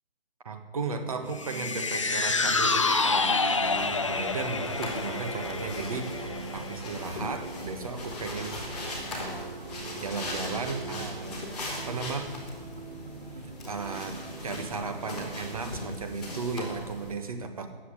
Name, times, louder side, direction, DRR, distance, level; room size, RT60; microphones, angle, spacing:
voice 1, 0.4-9.4 10.0-12.3 13.7-14.2 14.4-17.7, right 4 dB, 35° right, 7 dB, 1.4 m, -35 dB
sound 1, 1.1-15.7, right 5 dB, 65° right, 1.4 m, -43 dB
sound 2, 1.4-7.8 8.2-8.3, left 3 dB, 30° left, 0.6 m, -28 dB
sound 3, 3.6-17.1, left 1 dB, ahead, 0.8 m, -39 dB
14.0 x 8.5 x 9.9 m, 1.4 s
hypercardioid pair, 175°, 30 cm